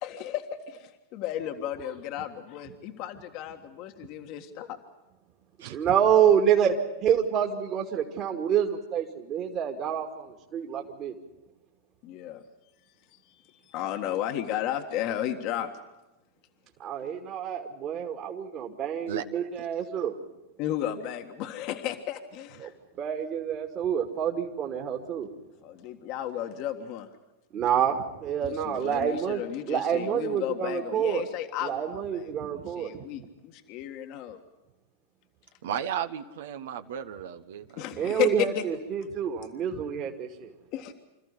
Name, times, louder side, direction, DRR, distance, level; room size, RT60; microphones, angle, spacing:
voice 1, 0.0-4.8 12.0-12.4 13.7-15.7 20.6-22.7 25.6-27.1 28.4-32.2 32.5-34.4 37.8-38.6 40.7-40.9, left 11 dB, 50° left, 5 dB, 1.6 m, -33 dB
voice 2, 5.6-6.7 7.0-11.1 16.8-20.2 22.6-22.7 23.0-25.3 27.5-29.4 29.7-31.3 31.6-33.0 37.9-40.5, right 8 dB, 40° right, 2 dB, 2.5 m, -27 dB
voice 3, 35.6-37.8, right 9 dB, 70° right, 9 dB, 1.3 m, -34 dB
26.5 x 14.0 x 9.8 m, 1.0 s
hypercardioid pair, 105°, 0 cm